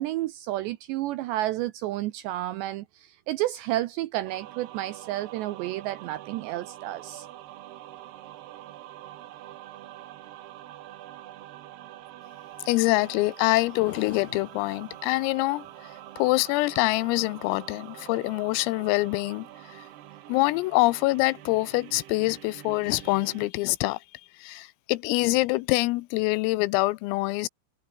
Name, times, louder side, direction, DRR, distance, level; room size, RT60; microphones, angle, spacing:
voice 1, 0.0-7.3, right 15 dB, 80° right, 2.6 m, -31 dB
sound 1, 4.3-23.5, right 13 dB, 65° right, 2.9 m, -45 dB
voice 2, 12.7-15.7 16.2-19.8 20.3-24.0 24.4-27.5, left 21 dB, 90° left, 3.5 m, -25 dB
omnidirectional pair, 5.9 m